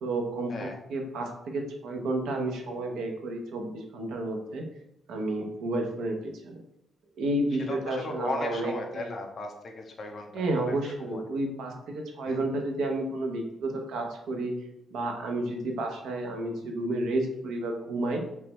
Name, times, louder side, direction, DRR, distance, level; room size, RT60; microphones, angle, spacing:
voice 1, 0.0-4.6 5.1-6.6 7.2-9.2 10.3-14.5 14.9-18.2, right 2 dB, 90° right, 2 dB, 0.7 m, -31 dB
voice 2, 7.7-11.2 12.3-12.4, left 2 dB, 35° left, 2 dB, 0.6 m, -36 dB
3.3 x 3.2 x 3.0 m, 0.82 s
cardioid pair, 170°, 0 cm